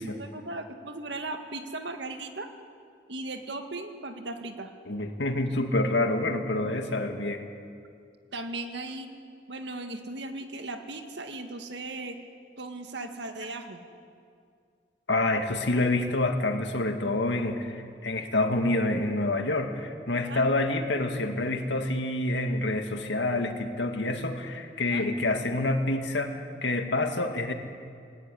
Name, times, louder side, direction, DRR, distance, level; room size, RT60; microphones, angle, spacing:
voice 1, 0.0-2.5 3.1-4.7 8.3-9.1 9.5-12.2 12.6-13.8 18.1-18.2 20.3-20.4 24.9-25.1, right 2 dB, 80° right, 6 dB, 1.9 m, -37 dB
voice 2, 4.9-7.4 15.1-27.5, left 2 dB, 85° left, 5 dB, 2.1 m, -27 dB
19.0 x 18.0 x 9.9 m, 2.3 s
head